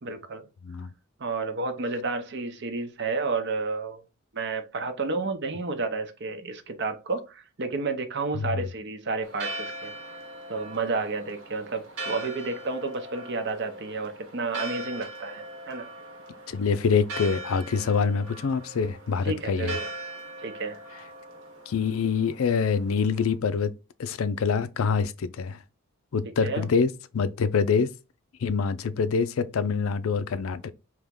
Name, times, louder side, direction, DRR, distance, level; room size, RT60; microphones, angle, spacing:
voice 1, 0.0-0.5 1.2-4.0 4.3-9.9 10.5-15.9 19.2-19.9 20.4-20.8 26.4-26.7, right 3 dB, 55° right, 0.7 m, -31 dB
Church bell, 9.2-23.3, right 1 dB, 80° right, 1.3 m, -40 dB
voice 2, 16.5-19.8 21.7-23.7 24.0-25.6 26.1-27.9 28.4-30.7, left 5 dB, 80° left, 0.4 m, -25 dB
3.5 x 3.0 x 3.6 m
head